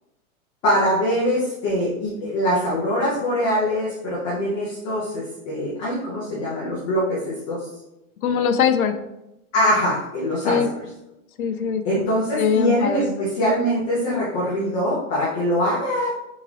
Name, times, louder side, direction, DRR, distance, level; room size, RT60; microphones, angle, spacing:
voice 1, 0.6-7.7 9.5-10.6 11.8-16.1, equal, 15° left, -9 dB, 0.6 m, -23 dB
voice 2, 8.2-9.0 10.5-10.7 11.4-12.1 12.4-13.1, left 7 dB, 85° left, 9 dB, 0.7 m, -22 dB
3.8 x 3.6 x 3.2 m, 0.91 s
hypercardioid pair, 165°, 42 cm